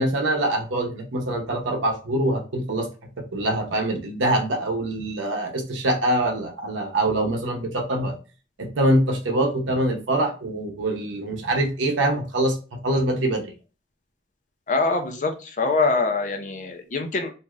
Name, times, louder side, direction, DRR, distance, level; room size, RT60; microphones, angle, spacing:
voice 1, 0.0-2.9 3.2-8.2 8.6-12.6 12.8-13.5, right 1 dB, 85° right, 3 dB, 0.8 m, -24 dB
voice 2, 14.7-17.3, left 3 dB, 40° left, 5 dB, 0.5 m, -24 dB
2.6 x 2.4 x 2.9 m, 0.34 s
head